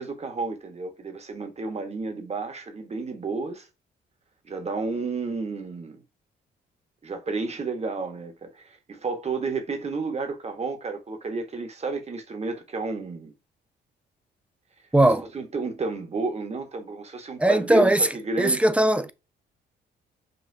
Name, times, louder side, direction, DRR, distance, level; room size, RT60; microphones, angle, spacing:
voice 1, 0.0-3.7 4.5-6.0 7.0-13.3 15.3-18.6, right 3 dB, 35° right, 1.3 m, -31 dB
voice 2, 14.9-15.3 17.4-18.1 18.4-19.1, right 1 dB, 5° right, 0.4 m, -19 dB
5.6 x 2.4 x 2.7 m
cardioid pair, 90°, 20 cm